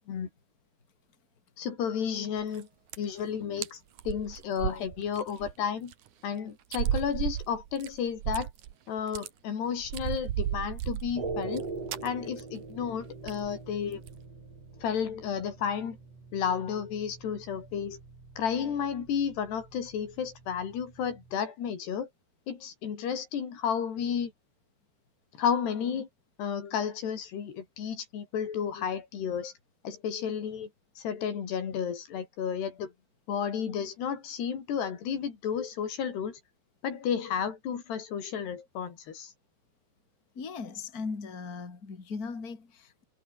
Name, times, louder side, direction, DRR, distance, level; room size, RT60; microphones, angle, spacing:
voice 1, 1.6-2.7 3.0-3.8 4.1-5.9 6.2-8.5 8.9-11.7 12.0-14.0 14.8-16.0 16.3-18.0 18.4-22.1 22.5-24.3 25.4-26.1 26.4-29.5 29.8-30.7 31.0-32.9 33.3-36.4 36.8-39.3, left 7 dB, 85° left, 5.7 m, -32 dB
sound 1, 2.4-2.6 2.9-3.2 3.6-3.7 4.0-5.5 5.9-6.0 6.7-8.7 9.0-9.3 9.8-11.6 11.9-12.1 12.4-12.6 12.8-12.9 13.3-13.5 13.9-14.2, right 11 dB, 60° right, 2.4 m, -34 dB
sound 2, 11.1-21.3, right 4 dB, 40° right, 6.6 m, -43 dB
voice 2, 40.3-43.0, left 4 dB, 25° left, 3.2 m, -38 dB
omnidirectional pair, 4.6 m